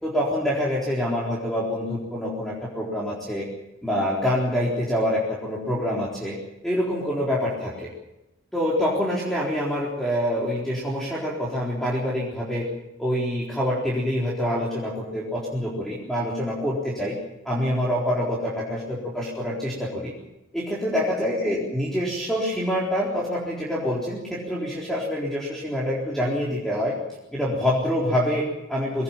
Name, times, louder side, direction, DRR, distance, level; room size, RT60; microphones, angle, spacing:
voice 1, 0.0-3.5 3.8-6.4 6.6-7.9 8.5-12.7 13.0-17.2 17.4-20.1 20.5-27.0 27.3-29.0, equal, ahead, -5 dB, 4.0 m, -26 dB
22.0 x 18.0 x 7.5 m, 0.93 s
head